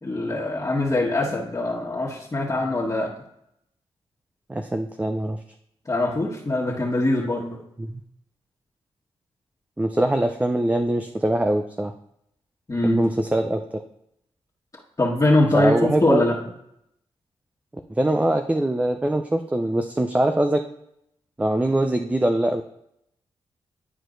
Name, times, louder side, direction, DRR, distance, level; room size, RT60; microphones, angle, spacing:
voice 1, 0.0-3.2 5.9-7.6 12.7-13.0 15.0-16.4, left 2 dB, 30° left, -5 dB, 1.5 m, -23 dB
voice 2, 4.5-5.4 7.8-8.0 9.8-11.9 12.8-13.8 15.5-16.2 17.9-20.6 21.4-22.6, right 1 dB, 15° right, 6 dB, 0.5 m, -23 dB
11.0 x 4.3 x 2.6 m, 0.77 s
supercardioid pair, 50°, 11 cm